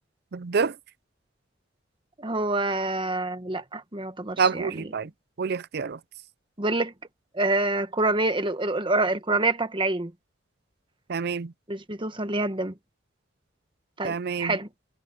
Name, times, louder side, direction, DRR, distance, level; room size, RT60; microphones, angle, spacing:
voice 1, 0.3-0.8 4.4-5.1 5.4-6.0 11.1-11.5 14.0-14.6, right 5 dB, 55° right, 0.5 m, -27 dB
voice 2, 2.2-4.7 6.6-6.9 7.3-10.1 11.7-12.7 14.0-14.7, right 2 dB, 25° right, 1.3 m, -26 dB
head